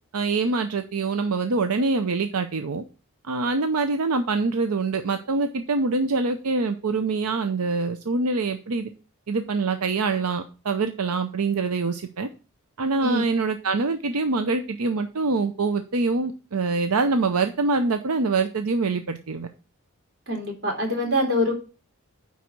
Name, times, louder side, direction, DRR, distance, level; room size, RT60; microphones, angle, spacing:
voice 1, 0.1-2.8 3.3-8.9 9.3-12.3 12.8-19.5, right 3 dB, 80° right, 0.6 m, -25 dB
voice 2, 20.3-21.5, equal, 50° right, 3.2 m, -24 dB
9.5 x 4.1 x 6.0 m
head